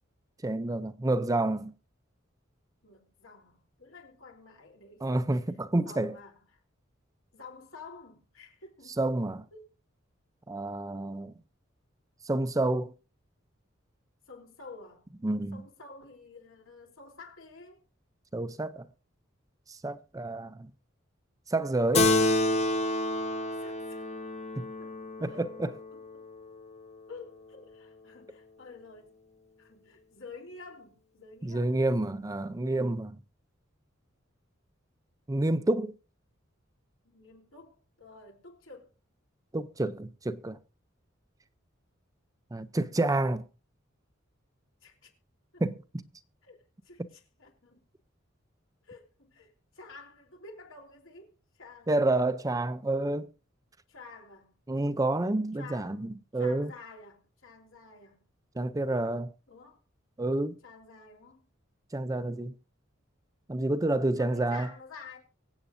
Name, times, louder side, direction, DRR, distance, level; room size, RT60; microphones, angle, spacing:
voice 1, 0.4-1.7 5.0-6.2 9.0-9.5 10.5-11.3 12.2-12.9 15.2-15.6 18.3-18.9 19.7-20.7 21.5-22.1 24.6-24.7 25.2-25.7 31.4-33.2 35.3-35.9 39.5-40.6 42.5-43.4 45.6-46.0 51.9-53.3 54.7-56.7 58.6-59.3 60.2-60.6 61.9-62.5 63.5-64.7, right 2 dB, 15° right, 0.5 m, -29 dB
voice 2, 2.8-5.2 5.7-6.6 7.3-9.1 9.5-9.7 14.3-15.0 15.5-17.8 23.6-24.1 24.8-24.9 25.3-25.5 25.9-26.2 27.1-29.1 29.6-31.8 37.0-38.9 44.8-45.1 45.5-45.6 46.4-47.8 48.8-51.3 51.5-52.0 53.9-54.5 55.6-56.0 56.3-58.2 59.5-59.8 60.6-61.4 64.1-65.2, left 4 dB, 80° left, 3.6 m, -50 dB
Keyboard (musical), 21.9-26.8, left 2 dB, 35° left, 1.0 m, -29 dB
24.0 x 8.1 x 2.6 m
head